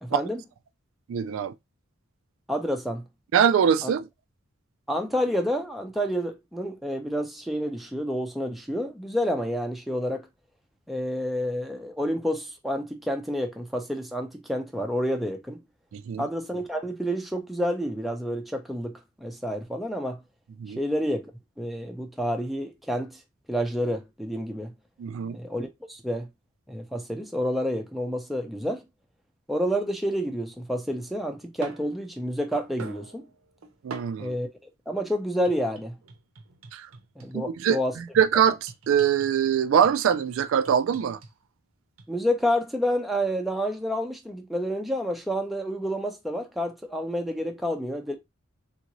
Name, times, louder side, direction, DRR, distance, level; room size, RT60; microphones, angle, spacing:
voice 1, 0.0-0.4 2.5-3.1 3.8-3.9 4.9-10.3 10.9-15.6 16.2-20.2 20.8-21.3 21.6-23.2 23.5-24.7 25.3-26.3 26.7-28.9 29.5-33.2 34.2-34.5 34.9-36.0 37.2-38.0 42.1-48.2, equal, ahead, 0.5 m, -29 dB
voice 2, 1.1-1.5 3.3-4.0 15.9-16.2 20.6-20.8 25.0-25.4 33.8-34.3 36.7-36.9 37.3-37.8 38.2-41.2, right 8 dB, 65° right, 0.3 m, -23 dB
sound 1, 31.0-34.4 35.5-37.6 38.7-39.4 39.8-41.3 42.0-42.2, right 3 dB, 85° right, 0.7 m, -45 dB
3.6 x 2.5 x 3.0 m
head